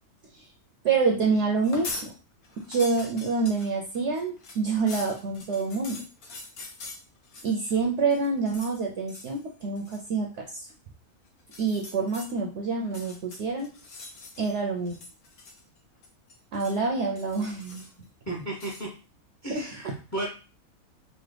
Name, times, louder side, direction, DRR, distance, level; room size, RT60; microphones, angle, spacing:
voice 1, 0.8-2.1 2.6-6.1 7.4-10.7 11.6-13.7 14.4-15.0 16.5-17.9 19.5-19.6, right 4 dB, 65° right, 0 dB, 0.8 m, -27 dB
sound 1, 1.5-2.1 2.4-7.8 8.1-8.8 9.1-9.4 9.8-10.1 11.4-12.3 12.8-14.6 14.9-15.8 16.0-16.8 17.2-18.0 18.6-18.9, left 3 dB, 50° left, 0.8 m, -43 dB
voice 2, 18.3-18.9 19.4-20.3, right 2 dB, 15° left, -2 dB, 0.6 m, -34 dB
4.1 x 2.2 x 3.3 m, 0.35 s
omnidirectional pair, 1.5 m